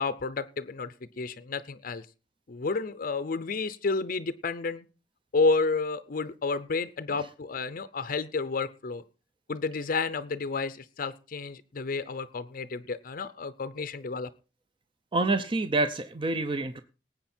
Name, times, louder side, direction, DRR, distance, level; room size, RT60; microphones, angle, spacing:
voice 1, 0.0-2.1 2.5-4.9 5.3-9.0 9.5-14.3, left 4 dB, 50° left, 13 dB, 0.6 m, -31 dB
voice 2, 15.1-16.8, right 2 dB, 30° right, 10 dB, 0.6 m, -27 dB
19.0 x 8.2 x 4.4 m, 0.34 s
head